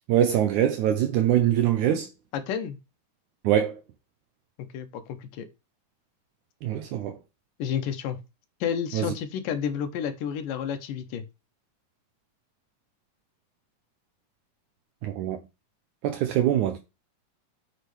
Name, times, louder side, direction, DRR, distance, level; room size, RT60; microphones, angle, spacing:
voice 1, 0.1-2.1 3.4-3.8 6.6-7.2 8.9-9.1 15.0-15.4 16.0-16.8, right 11 dB, 75° right, 2.0 m, -23 dB
voice 2, 2.5-2.8 4.7-5.5 7.6-8.2 8.6-11.2, left 8 dB, 85° left, 2.6 m, -30 dB
8.6 x 6.4 x 3.3 m
omnidirectional pair, 3.8 m